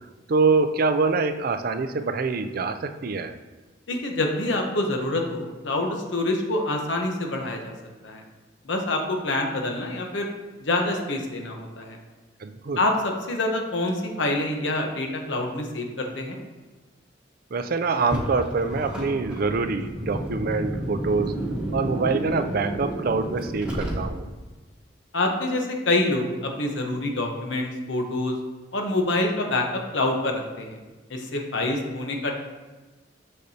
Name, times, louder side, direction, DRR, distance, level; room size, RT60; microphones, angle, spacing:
voice 1, 0.3-3.3 12.4-12.8 17.5-21.3 21.7-24.3, right 4 dB, 50° right, 8 dB, 0.4 m, -25 dB
voice 2, 3.9-7.7 8.0-8.2 8.6-10.3 10.6-12.0 12.8-16.4 25.1-28.4 28.7-30.8 31.1-32.3, left 2 dB, 80° left, 2 dB, 1.0 m, -26 dB
Car, 17.9-24.5, right 1 dB, 5° right, 1.1 m, -31 dB
6.6 x 6.6 x 2.8 m, 1.2 s
head